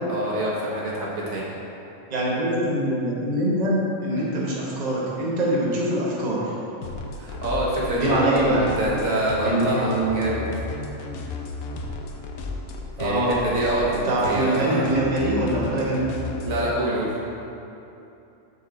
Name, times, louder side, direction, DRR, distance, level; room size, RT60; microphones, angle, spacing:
voice 1, 0.1-1.4 7.1-10.5 13.0-14.8 16.5-17.1, right 1 dB, 70° right, -5 dB, 1.6 m, -26 dB
voice 2, 2.1-6.5 7.9-8.7 9.4-10.3 13.0-13.4 14.0-16.1, right 1 dB, 30° right, -6 dB, 1.2 m, -23 dB
sound 1, 6.8-16.7, left 3 dB, 85° left, 1.1 m, -34 dB
8.7 x 4.6 x 3.9 m, 2.8 s
omnidirectional pair, 1.4 m